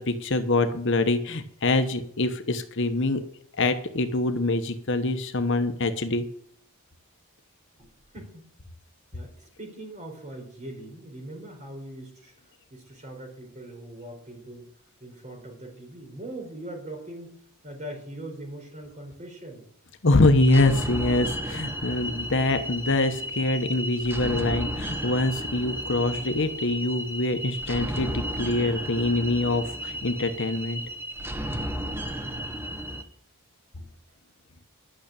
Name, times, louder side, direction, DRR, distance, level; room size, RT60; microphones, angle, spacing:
voice 1, 0.0-3.2 3.6-6.3 20.0-30.8, left 2 dB, 55° left, 8 dB, 1.1 m, -24 dB
voice 2, 7.8-8.4 9.1-12.3 12.7-14.7 15.0-17.4 17.6-19.7 33.8-33.9, right 1 dB, 35° right, 2 dB, 4.5 m, -41 dB
sound 1, 20.4-33.0, equal, 10° right, 1.0 m, -33 dB
11.5 x 6.7 x 8.8 m, 0.67 s
head